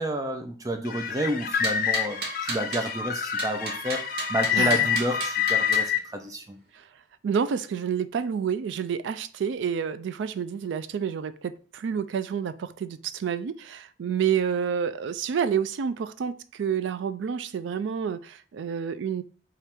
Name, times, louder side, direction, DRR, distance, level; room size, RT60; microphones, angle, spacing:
voice 1, 0.0-6.6, right 1 dB, 20° right, 0.4 m, -30 dB
sound 1, 0.8-6.0, left 8 dB, 45° left, 0.4 m, -27 dB
sound 2, 1.6-2.9 3.4-5.9, right 4 dB, 60° right, 0.7 m, -34 dB
voice 2, 4.5-4.9 6.7-6.8 7.2-19.2, right 7 dB, 85° right, 0.3 m, -29 dB
3.4 x 2.4 x 4.3 m
head